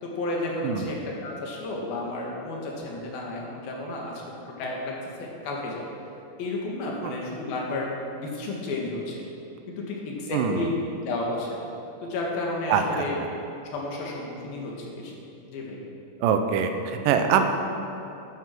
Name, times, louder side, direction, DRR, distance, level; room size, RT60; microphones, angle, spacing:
voice 1, 0.0-4.2 4.6-4.9 5.2-5.8 6.4-7.9 8.2-9.3 9.7-10.7 11.0-11.6 12.0-13.2 13.7-15.1 15.5-15.8, left 2 dB, 80° left, -2 dB, 3.8 m, -32 dB
voice 2, 10.3-10.7 12.7-13.0 16.2-17.6, right 7 dB, 75° right, 6 dB, 2.4 m, -24 dB
12.0 x 9.7 x 6.1 m, 2.9 s
omnidirectional pair, 4.2 m